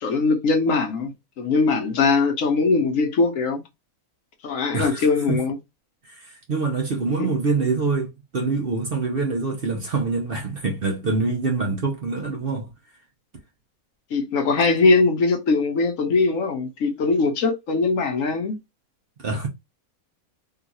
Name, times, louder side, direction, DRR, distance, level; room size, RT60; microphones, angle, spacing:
voice 1, 0.0-3.6 4.4-5.6 14.1-18.6, left 4 dB, 65° left, 1.1 m, -21 dB
voice 2, 4.7-5.4 6.0-12.7 19.2-19.5, right 4 dB, 50° right, 0.8 m, -25 dB
3.8 x 2.4 x 2.8 m
omnidirectional pair, 1.5 m